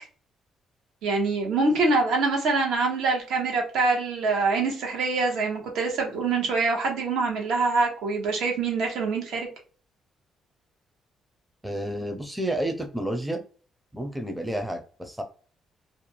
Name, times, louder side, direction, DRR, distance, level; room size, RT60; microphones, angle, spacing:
voice 1, 1.0-9.5, right 3 dB, 80° right, 1 dB, 1.0 m, -25 dB
voice 2, 11.6-13.4 13.9-15.2, right 1 dB, 5° right, 5 dB, 0.5 m, -30 dB
2.5 x 2.2 x 2.9 m, 0.40 s
cardioid pair, 90°, 0 cm